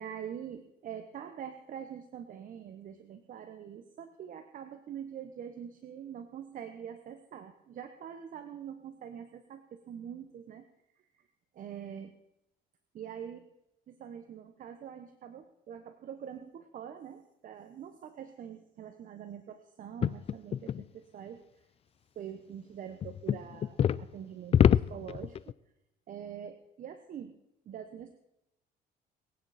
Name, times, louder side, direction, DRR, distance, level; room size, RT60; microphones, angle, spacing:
voice 1, 0.0-10.7 10.9-11.3 11.5-12.1 12.9-13.5 13.9-21.7 22.1-25.5 26.1-27.4 27.6-28.1, right 8 dB, 50° right, 9 dB, 1.0 m, -44 dB
sound 1, 20.0-20.8 23.0-24.0 24.5-25.5, left 9 dB, 35° left, 0.4 m, -25 dB
23.0 x 9.0 x 4.2 m, 0.89 s
cardioid pair, 110°, 17 cm